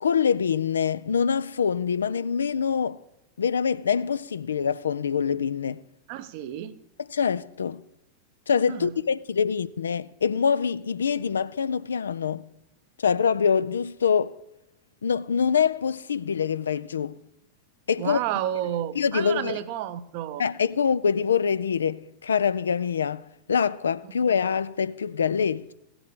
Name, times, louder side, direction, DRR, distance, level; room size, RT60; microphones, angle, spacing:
voice 1, 0.0-3.0 3.4-5.8 7.1-7.8 8.5-12.4 13.0-14.3 15.0-17.2 17.9-18.2 19.0-19.6 20.4-23.2 23.5-25.7, left 6 dB, 70° left, 0.3 m, -25 dB
voice 2, 6.1-6.7 8.7-8.9 18.0-20.4, right 11 dB, 45° right, 0.7 m, -31 dB
16.5 x 6.9 x 3.6 m
figure-of-eight pair, 90°, 0 cm